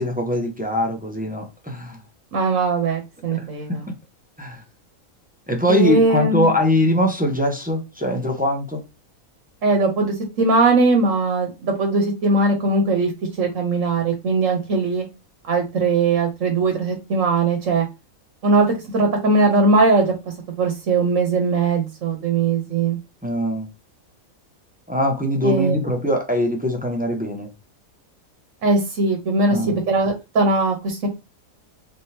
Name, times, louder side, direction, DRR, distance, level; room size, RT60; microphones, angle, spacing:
voice 1, 0.0-2.0 3.4-3.8 4.4-4.6 5.5-8.8 23.2-23.7 24.9-27.5 29.5-29.8, equal, 10° right, 0.7 m, -22 dB
voice 2, 2.3-3.8 5.7-6.5 9.6-13.1 13.4-15.0 15.5-17.9 18.4-20.1 20.6-23.0 25.4-25.7 28.6-31.1, right 3 dB, 65° right, 1.4 m, -20 dB
3.9 x 3.5 x 2.8 m
omnidirectional pair, 1.5 m